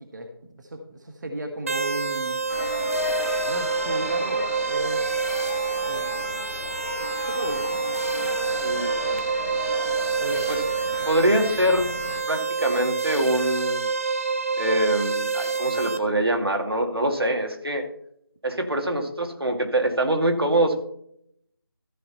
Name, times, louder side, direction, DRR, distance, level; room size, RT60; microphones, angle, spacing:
voice 1, 0.0-2.4 3.5-5.0 5.9-6.5 7.3-7.8 10.2-10.4 11.0-11.1, right 1 dB, 50° right, 4 dB, 1.5 m, -34 dB
sound 1, 1.7-16.0, right 4 dB, 35° right, 1.0 m, -27 dB
sound 2, 2.5-12.2, left 3 dB, 35° left, 1.4 m, -34 dB
voice 2, 8.6-9.2 10.5-10.6 11.1-11.9 12.3-13.8 14.6-17.8 18.4-20.8, right 1 dB, 90° right, 4 dB, 2.3 m, -24 dB
14.0 x 6.0 x 4.1 m, 0.71 s
figure-of-eight pair, 165°, 12 cm